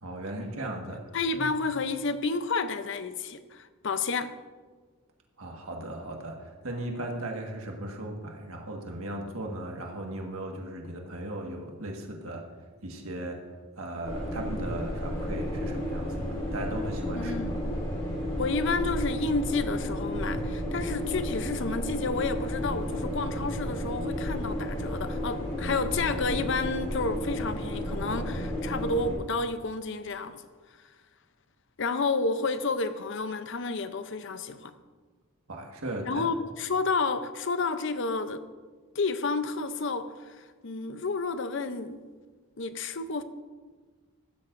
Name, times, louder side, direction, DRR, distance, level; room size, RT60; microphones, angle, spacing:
voice 1, 0.0-1.5 5.4-12.4 12.8-13.4 13.8-17.6 35.5-36.3, right 1 dB, 80° right, 1.6 m, -37 dB
voice 2, 1.1-4.4 17.1-17.7 18.4-30.4 31.8-34.7 36.1-38.4 38.9-42.0 42.6-43.2, left 3 dB, 55° left, 0.6 m, -30 dB
sound 1, 14.0-29.1, equal, 25° left, 3.7 m, -32 dB
15.0 x 12.5 x 2.6 m
head